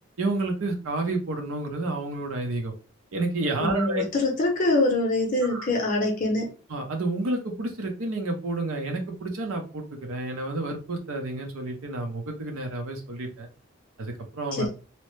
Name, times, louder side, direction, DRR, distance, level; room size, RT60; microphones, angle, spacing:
voice 1, 0.2-2.7 3.1-4.0 5.4-5.7 6.7-13.5 14.0-14.7, right 2 dB, 90° right, 3 dB, 0.6 m, -30 dB
voice 2, 3.6-6.5 14.6-14.7, left 2 dB, 45° left, 1 dB, 0.6 m, -24 dB
2.8 x 2.0 x 3.0 m, 0.35 s
head